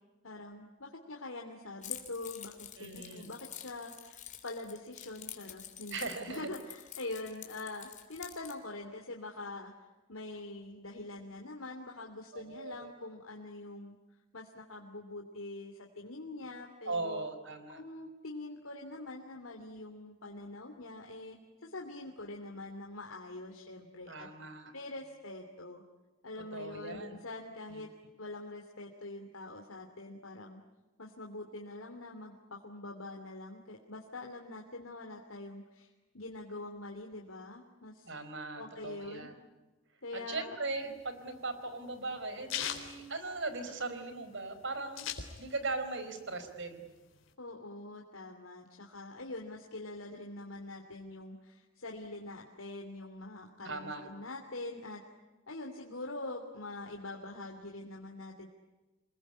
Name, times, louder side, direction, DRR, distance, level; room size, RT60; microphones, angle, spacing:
voice 1, 0.2-6.0 6.3-9.7 10.1-13.9 14.3-17.3 17.7-21.4 21.6-24.3 24.7-25.8 26.2-27.9 28.2-30.6 31.0-38.1 38.6-39.3 40.0-40.6 47.4-55.0 55.5-58.5, left 2 dB, 85° left, 2 dB, 3.0 m, -44 dB
Keys jangling, 1.8-8.6, left 10 dB, 40° left, 3.3 m, -47 dB
voice 2, 2.8-3.3 5.9-6.5 12.3-12.9 16.9-17.8 24.1-24.7 26.5-27.2 27.7-27.8 38.0-39.3 40.1-45.1 45.4-46.8 53.6-54.1, right 3 dB, 60° right, 9 dB, 4.6 m, -39 dB
sound 1, 40.8-43.9 44.2-44.3 44.5-45.8 46.2-47.3, left 9 dB, 65° left, 3.8 m, -40 dB
28.0 x 21.5 x 9.8 m, 1.2 s
head